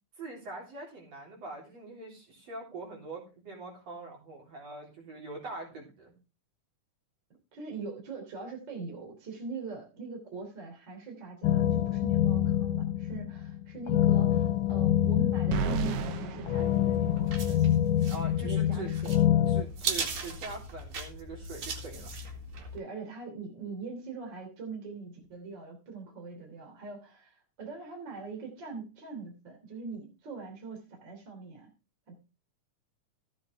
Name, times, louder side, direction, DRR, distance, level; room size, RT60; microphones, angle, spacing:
voice 1, 0.2-6.1 18.1-18.9 19.5-22.2, right 3 dB, 50° right, -2 dB, 4.7 m, -43 dB
voice 2, 7.5-17.6 18.3-19.2 22.7-31.7 32.1-32.2, right 4 dB, 35° right, 2 dB, 3.6 m, -42 dB
sound 1, 11.4-19.6, left 11 dB, 80° left, 2.2 m, -26 dB
sound 2, 15.5-17.7, right 9 dB, 75° right, 1.5 m, -34 dB
sound 3, 16.6-22.8, right 4 dB, 90° right, 3.7 m, -39 dB
14.5 x 8.2 x 3.5 m, 0.30 s
omnidirectional pair, 3.6 m